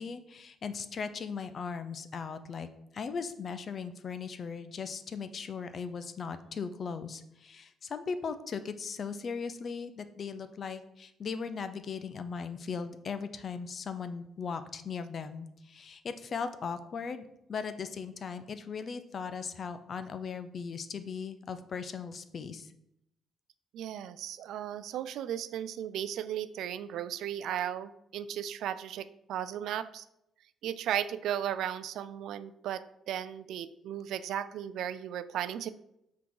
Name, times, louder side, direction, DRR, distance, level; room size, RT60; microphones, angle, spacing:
voice 1, 0.0-2.7 2.9-22.7, left 5 dB, 50° left, 11 dB, 0.5 m, -38 dB
voice 2, 23.7-30.0 30.6-35.7, right 10 dB, 80° right, 14 dB, 0.3 m, -35 dB
5.9 x 3.7 x 4.7 m, 0.80 s
cardioid pair, 90°, 0 cm